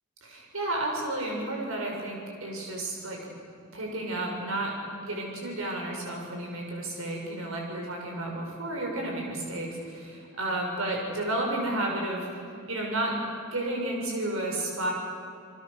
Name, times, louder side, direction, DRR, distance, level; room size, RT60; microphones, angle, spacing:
voice 1, 0.2-3.3 3.7-12.3 12.7-13.2 13.5-14.9, right 1 dB, 75° right, 0 dB, 6.5 m, -32 dB
28.5 x 23.5 x 6.7 m, 2.5 s
head